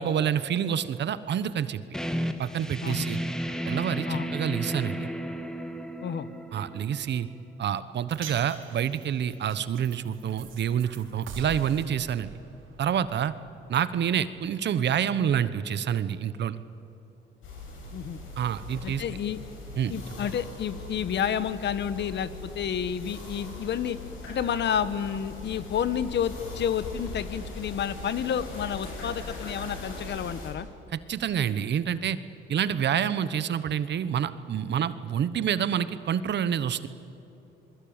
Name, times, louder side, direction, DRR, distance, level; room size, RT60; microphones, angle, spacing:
voice 1, 0.0-1.8 2.4-3.2 3.7-5.1 6.5-7.3 7.6-12.3 12.8-13.3 13.7-16.6 18.4-19.0 19.8-19.9 30.9-32.2 32.5-36.9, right 9 dB, 60° right, 14 dB, 1.1 m, -27 dB
sound 1, 1.9-7.4, equal, 5° left, 2.0 m, -33 dB
voice 2, 2.8-3.1 4.1-4.3 6.0-6.3 17.9-18.2 18.8-19.4 19.9-24.0 24.3-30.7, left 8 dB, 60° left, 14 dB, 1.3 m, -30 dB
sound 2, 8.1-14.5, right 5 dB, 80° right, 4.4 m, -45 dB
sound 3, 17.4-30.5, left 3 dB, 85° left, 7.6 m, -40 dB
28.0 x 22.0 x 8.9 m, 2.9 s
cardioid pair, 90°, 20 cm